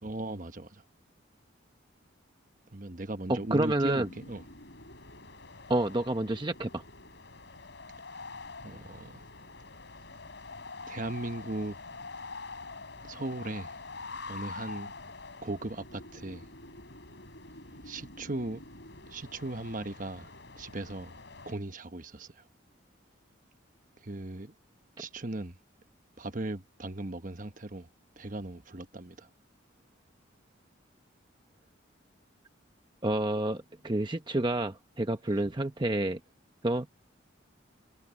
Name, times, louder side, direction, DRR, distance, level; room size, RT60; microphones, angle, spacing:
voice 1, 0.0-0.8 2.7-4.5 8.6-9.2 10.9-12.0 13.0-13.8 14.3-14.9 15.4-16.5 17.8-18.6 19.1-20.3 20.6-21.2 21.5-22.4 24.0-24.5 25.0-25.6 26.2-27.9 28.2-29.3 35.3-35.4, right 2 dB, 40° right, 1.2 m, -38 dB
sound 1, 3.2-21.5, left 3 dB, 65° left, 4.2 m, -46 dB
voice 2, 3.3-4.1 5.7-6.8 33.0-36.2 36.6-37.0, right 1 dB, 25° right, 0.9 m, -29 dB
head